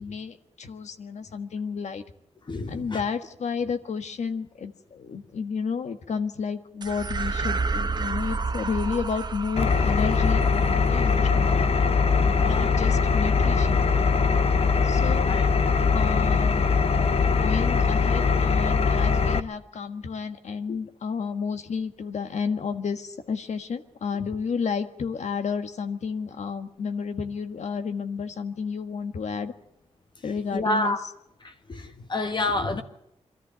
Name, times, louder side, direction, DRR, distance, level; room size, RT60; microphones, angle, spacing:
voice 1, 0.0-2.0 2.7-11.7 12.4-13.9 14.8-15.3 15.9-16.7 16.9-29.5 30.2-31.0, left 5 dB, 75° left, 1.5 m, -31 dB
voice 2, 2.5-3.0 12.2-12.7 15.3-15.5 30.5-31.0 31.4-32.8, left 2 dB, 40° left, 1.4 m, -29 dB
sound 1, 6.8-15.4, right 4 dB, 35° right, 1.0 m, -33 dB
Engine, 9.6-19.4, left 5 dB, 60° left, 0.8 m, -21 dB
23.0 x 13.5 x 8.8 m
wide cardioid pair, 100°, 12 cm